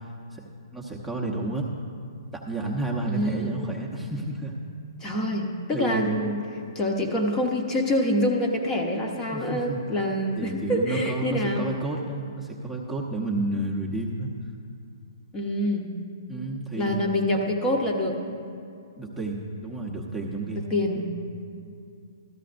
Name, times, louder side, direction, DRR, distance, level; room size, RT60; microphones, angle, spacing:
voice 1, 0.7-1.7 2.3-4.6 5.7-6.2 9.3-9.8 10.4-14.3 16.3-17.1 19.0-20.7 20.9-21.1, right 2 dB, 5° right, -4 dB, 0.9 m, -31 dB
voice 2, 3.1-3.6 5.0-6.4 6.7-11.6 15.3-15.9 16.8-18.2 20.5-21.1, left 1 dB, 20° left, 1 dB, 1.0 m, -26 dB
13.5 x 12.5 x 2.6 m, 2.5 s
hypercardioid pair, 140°, 2 cm